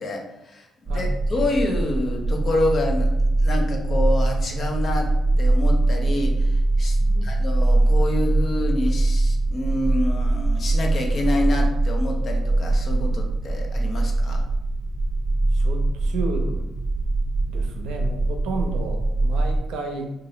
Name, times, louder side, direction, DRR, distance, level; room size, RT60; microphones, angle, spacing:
voice 1, 0.0-3.1 3.4-5.1 5.4-14.4, left 2 dB, 50° left, 2 dB, 0.6 m, -27 dB
sound 1, 0.9-19.6, right 2 dB, 25° right, 0.5 m, -22 dB
voice 2, 7.0-7.4 15.5-16.6 17.5-20.1, right 3 dB, 90° right, 3 dB, 0.5 m, -32 dB
2.8 x 2.5 x 3.1 m, 0.92 s
cardioid pair, 90°, 0 cm